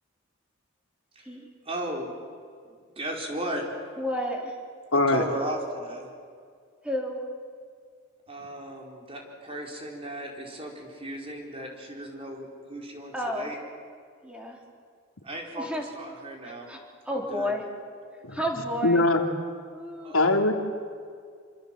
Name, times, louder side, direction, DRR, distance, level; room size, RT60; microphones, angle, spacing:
voice 1, 1.6-2.1 2.6-3.8 4.9-6.1 8.3-13.6 15.2-16.7 17.1-17.5 20.0-20.5, right 1 dB, 25° right, 1 dB, 4.4 m, -36 dB
voice 2, 4.0-4.5 6.8-7.2 13.1-13.5 14.2-14.6 15.6-15.8 16.4-16.8 17.1-17.6 18.3-19.0 19.7-20.1, equal, 5° right, 1 dB, 3.8 m, -31 dB
voice 3, 4.9-5.2 18.2-18.4 18.8-19.2 20.1-20.5, left 2 dB, 80° left, 4 dB, 2.5 m, -21 dB
27.0 x 25.5 x 7.7 m, 2.1 s
head